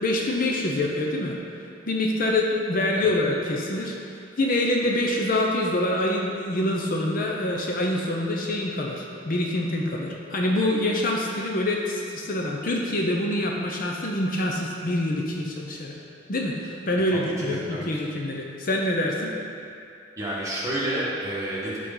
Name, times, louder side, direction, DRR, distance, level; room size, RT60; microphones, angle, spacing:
voice 1, 0.0-1.3 1.9-3.9 4.4-16.0 16.3-19.3, left 1 dB, 45° left, -1 dB, 0.7 m, -25 dB
voice 2, 17.1-17.9 20.2-21.8, right 1 dB, 15° right, -8 dB, 1.7 m, -30 dB
12.0 x 4.1 x 3.9 m, 2.5 s
head